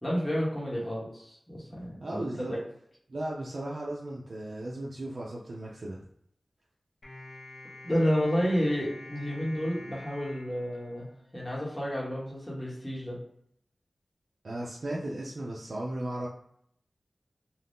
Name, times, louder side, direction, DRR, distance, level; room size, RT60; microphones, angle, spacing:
voice 1, 0.0-2.6 7.8-11.1 11.3-13.2 14.9-15.0, equal, 10° left, -6 dB, 1.1 m, -30 dB
voice 2, 2.0-2.5 3.1-6.0 14.4-16.3, right 1 dB, 65° right, -4 dB, 0.5 m, -36 dB
sound 1, 7.0-11.5, left 2 dB, 60° left, 1.0 m, -47 dB
2.6 x 2.3 x 3.5 m, 0.69 s
wide cardioid pair, 75°, 0 cm